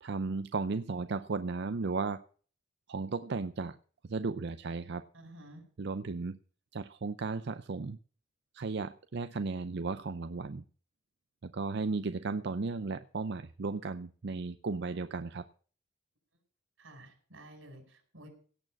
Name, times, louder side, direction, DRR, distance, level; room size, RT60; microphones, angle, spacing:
voice 1, 0.0-2.2 2.9-3.8 4.1-5.1 5.8-6.4 6.7-8.0 8.5-10.6 11.4-15.5, right 4 dB, 60° right, 11 dB, 0.5 m, -35 dB
voice 2, 5.1-5.7 16.8-18.3, right 1 dB, 90° right, 5 dB, 5.1 m, -52 dB
17.0 x 6.5 x 7.6 m, 0.42 s
head